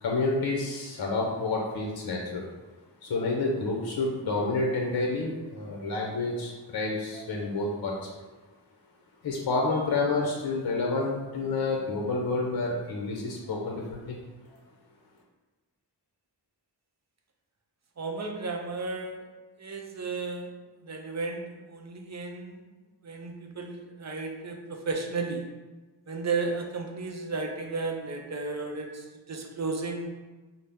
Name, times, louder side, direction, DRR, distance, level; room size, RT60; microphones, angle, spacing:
voice 1, 0.0-2.5 3.0-8.2 9.2-14.2 14.5-14.6, left 3 dB, 55° left, -1 dB, 0.7 m, -29 dB
voice 2, 18.0-19.3 19.6-20.5 20.8-22.6 23.0-25.4 26.1-30.1, right 3 dB, 40° right, 2 dB, 0.6 m, -34 dB
5.5 x 2.1 x 3.4 m, 1.3 s
wide cardioid pair, 90°, 45 cm